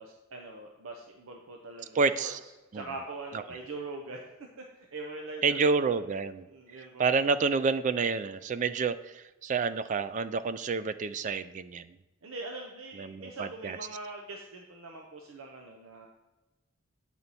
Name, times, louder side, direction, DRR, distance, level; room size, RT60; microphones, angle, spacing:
voice 1, 0.0-4.2 4.6-5.6 5.9-6.0 6.5-7.2 12.2-16.1, right 2 dB, 85° right, 1 dB, 0.7 m, -43 dB
voice 2, 1.9-2.4 2.7-2.8 5.4-6.5 7.0-11.8 13.0-13.8, right 4 dB, 35° right, 13 dB, 0.3 m, -28 dB
8.2 x 4.4 x 4.1 m, 1.1 s
head